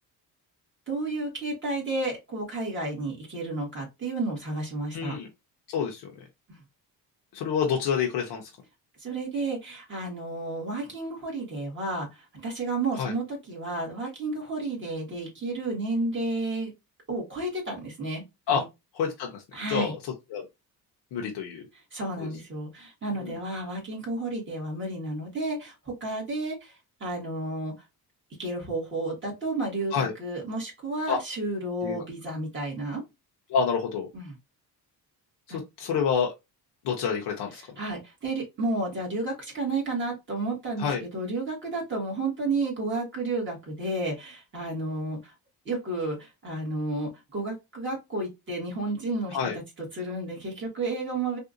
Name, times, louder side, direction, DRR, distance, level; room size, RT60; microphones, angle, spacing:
voice 1, 0.9-5.2 6.5-6.6 9.0-16.7 17.1-18.2 18.5-18.6 19.5-19.9 21.9-27.7 28.4-33.0 34.1-34.4 35.5-35.6 37.6-45.3 45.7-49.4 49.9-51.4, right 2 dB, 30° right, 1.8 m, -32 dB
voice 2, 4.9-5.3 5.7-6.1 7.3-8.5 13.0-13.1 18.5-18.6 18.9-19.4 19.7-20.0 20.3-20.4 21.1-21.6 22.2-22.3 23.1-23.4 29.9-30.1 31.1-31.2 31.8-32.0 33.5-34.1 35.5-36.3 36.8-37.6 40.8-41.0 49.3-49.6, left 6 dB, 80° left, 0.8 m, -28 dB
3.5 x 2.6 x 2.5 m
cardioid pair, 155°, 40 cm